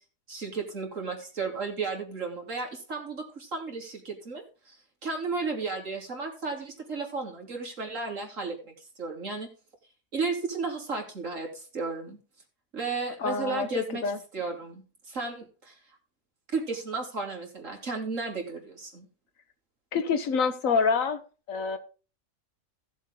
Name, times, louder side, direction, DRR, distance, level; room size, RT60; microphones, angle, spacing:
voice 1, 0.3-4.8 5.0-9.5 10.1-12.2 12.7-14.0 14.3-15.8 16.5-19.1, right 4 dB, 70° right, 1 dB, 3.4 m, -34 dB
voice 2, 13.2-14.2 19.9-21.2 21.5-21.8, left 5 dB, 80° left, 10 dB, 1.5 m, -27 dB
16.0 x 7.3 x 3.8 m, 0.36 s
omnidirectional pair, 1.4 m